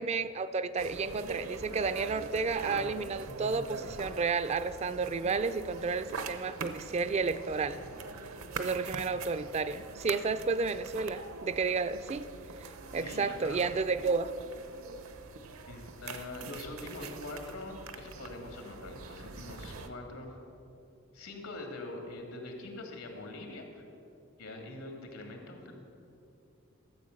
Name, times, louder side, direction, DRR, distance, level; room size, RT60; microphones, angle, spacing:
voice 1, 0.0-7.8 8.6-12.3 12.6-14.3, right 4 dB, 30° right, 13 dB, 0.3 m, -32 dB
sound 1, 0.8-19.9, right 4 dB, 75° right, 0.8 m, -43 dB
voice 2, 12.9-13.6 15.6-20.4 21.1-23.8 24.4-25.7, left 2 dB, 90° left, 2 dB, 2.3 m, -43 dB
13.5 x 7.6 x 6.5 m, 2.7 s
head